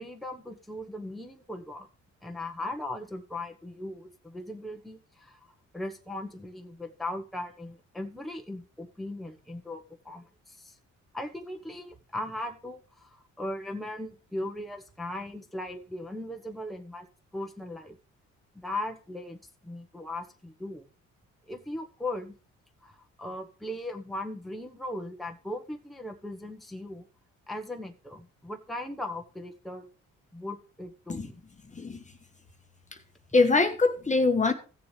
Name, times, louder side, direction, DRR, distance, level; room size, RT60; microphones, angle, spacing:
voice 1, 0.0-1.9 2.2-5.4 5.7-10.8 11.1-17.1 17.3-17.9 18.5-20.9 21.5-22.4 22.8-27.1 27.5-29.9 30.3-31.4, left 1 dB, ahead, 3 dB, 1.2 m, -38 dB
voice 2, 33.3-34.5, left 3 dB, 25° left, 6 dB, 1.2 m, -23 dB
15.5 x 7.0 x 3.3 m, 0.35 s
cardioid pair, 90°, 30 cm